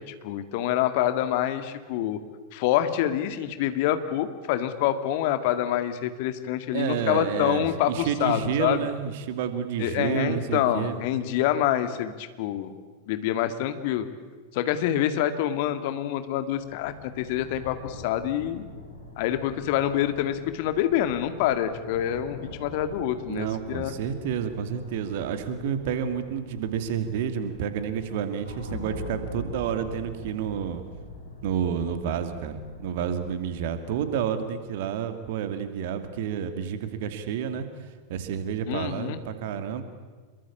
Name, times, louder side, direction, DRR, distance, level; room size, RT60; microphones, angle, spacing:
voice 1, 0.0-2.2 2.5-8.8 9.8-12.7 13.1-14.1 14.5-18.6 19.2-24.0 38.7-39.2, left 11 dB, 50° left, 10 dB, 2.1 m, -26 dB
voice 2, 6.7-11.0 23.3-30.8 31.4-37.7 38.1-39.8, right 8 dB, 50° right, 9 dB, 2.6 m, -30 dB
sound 1, 16.5-34.1, left 2 dB, 85° left, 6.0 m, -43 dB
27.5 x 22.5 x 8.6 m, 1.4 s
figure-of-eight pair, 90°, 0 cm